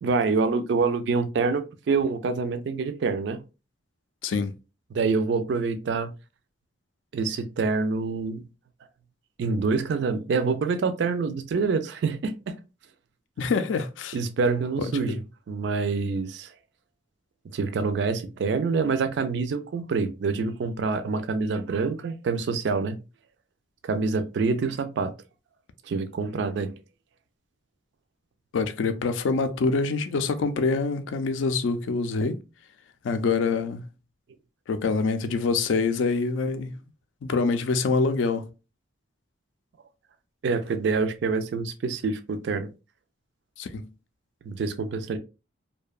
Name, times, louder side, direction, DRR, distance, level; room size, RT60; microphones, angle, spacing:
voice 1, 0.0-3.4 4.9-6.1 7.1-8.4 9.4-12.6 14.1-15.2 15.5-16.5 17.4-23.0 23.8-25.1 25.9-26.7 40.4-42.7 44.4-45.2, right 4 dB, 65° right, 0.3 m, -26 dB
voice 2, 13.4-14.2 14.8-15.2 28.5-32.4 33.0-33.8 34.7-36.8 37.2-38.5 43.6-43.9, left 4 dB, 80° left, 0.4 m, -25 dB
2.7 x 2.1 x 2.3 m
head